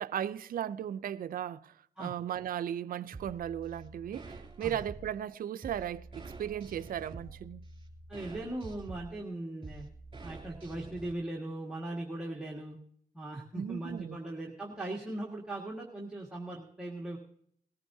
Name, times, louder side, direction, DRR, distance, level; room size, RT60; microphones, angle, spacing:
voice 1, 0.0-1.7 2.0-7.7 13.5-14.2, right 10 dB, 65° right, 0.5 m, -36 dB
sound 1, 3.1-11.1, right 3 dB, 30° right, 2.7 m, -47 dB
voice 2, 8.1-9.9 10.2-12.8 13.1-17.2, right 1 dB, 5° right, 1.8 m, -39 dB
19.5 x 14.0 x 2.7 m
cardioid pair, 85°, 16 cm